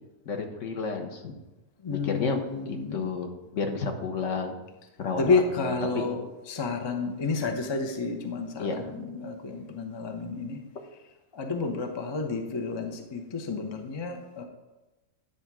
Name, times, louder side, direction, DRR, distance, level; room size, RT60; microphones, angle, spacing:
voice 1, 0.3-1.3 1.9-4.5 5.0-6.1 8.6-8.8, left 4 dB, 55° left, 4 dB, 1.1 m, -31 dB
voice 2, 1.8-3.1 5.2-10.6 11.3-14.4, left 4 dB, 40° left, 4 dB, 0.4 m, -30 dB
9.9 x 3.6 x 6.0 m, 1.1 s
omnidirectional pair, 1.7 m